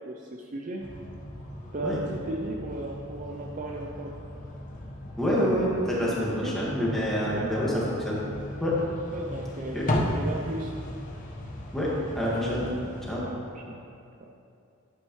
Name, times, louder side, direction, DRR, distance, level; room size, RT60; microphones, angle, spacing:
voice 1, 0.1-0.8 1.7-4.1 6.4-6.5 7.3-7.5 9.1-10.7 13.2-13.8, right 2 dB, 35° right, 0 dB, 0.5 m, -36 dB
sound 1, 0.8-13.1, left 1 dB, 40° left, 1.0 m, -36 dB
voice 2, 5.2-8.2 8.6-8.8 9.7-9.9 11.7-12.7 13.1-13.2, equal, ahead, -7 dB, 1.8 m, -27 dB
11.5 x 8.5 x 3.1 m, 2.6 s
head